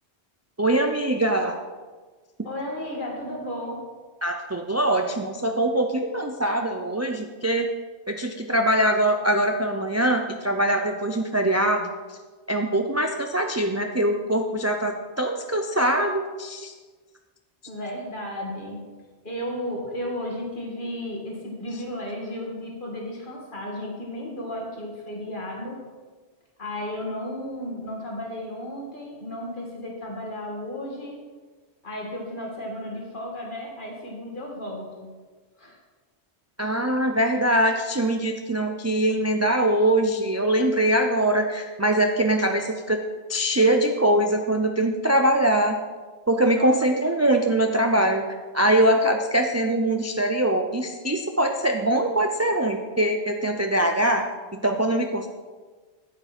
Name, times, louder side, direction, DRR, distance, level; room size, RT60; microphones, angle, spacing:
voice 1, 0.6-1.6 4.2-7.7 8.1-12.2 12.5-16.7 36.6-43.0 43.3-45.8 46.3-48.3 48.5-54.2 54.5-55.3, right 1 dB, 25° right, 4 dB, 0.4 m, -23 dB
voice 2, 2.4-3.9 17.7-18.9 19.2-25.8 26.6-31.2 31.8-35.1 35.6-35.8 46.5-46.7, left 1 dB, 50° left, -2 dB, 2.2 m, -34 dB
9.5 x 8.1 x 4.3 m, 1.4 s
omnidirectional pair, 1.1 m